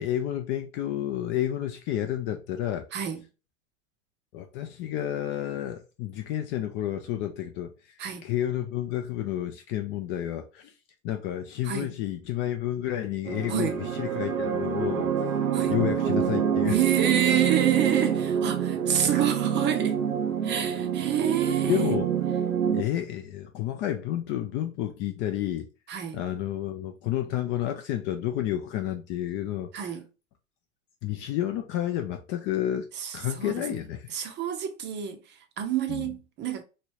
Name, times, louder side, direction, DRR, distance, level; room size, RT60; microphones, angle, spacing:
voice 1, 0.0-2.9 4.3-10.7 11.0-15.3 15.7-16.8 21.7-22.1 22.7-25.7 26.1-29.7 31.0-34.1 35.9-36.1, left 12 dB, 30° left, 0.4 m, -30 dB
sound 1, 13.3-22.8, right 8 dB, 90° right, 0.7 m, -27 dB
voice 2, 16.7-20.0 20.4-21.8 25.9-26.2 29.7-30.0 33.0-33.8 34.1-36.6, right 9 dB, 30° right, 0.6 m, -28 dB
3.1 x 2.6 x 2.9 m
hypercardioid pair, 105°, 39 cm